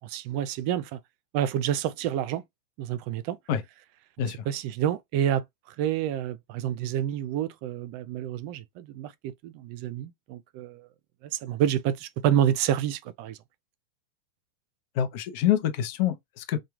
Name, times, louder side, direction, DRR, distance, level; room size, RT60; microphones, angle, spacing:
voice 1, 0.0-1.0 1.3-2.4 2.8-3.4 4.4-5.4 5.8-10.9 11.2-13.4, right 10 dB, 55° right, 0.4 m, -28 dB
voice 2, 15.0-16.6, left 10 dB, 55° left, 0.6 m, -26 dB
2.9 x 2.2 x 2.3 m
hypercardioid pair, 105°, 0 cm